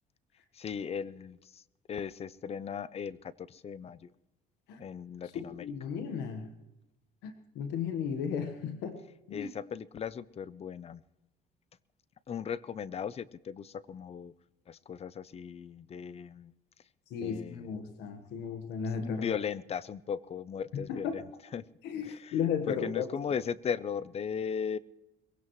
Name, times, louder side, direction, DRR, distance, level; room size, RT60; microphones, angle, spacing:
voice 1, 0.5-1.6 1.9-4.1 4.8-5.7 9.3-11.0 12.3-14.3 14.7-16.5 17.2-17.7 18.9-21.2 21.5-21.6 22.0-22.4 22.7-24.8, left 7 dB, 35° left, 19 dB, 0.6 m, -37 dB
voice 2, 5.3-6.6 7.2-9.0 9.3-9.5 17.1-19.4 20.7-21.2 21.8-23.1, left 7 dB, 90° left, 8 dB, 1.4 m, -35 dB
22.5 x 17.0 x 3.1 m, 0.97 s
cardioid pair, 110°, 17 cm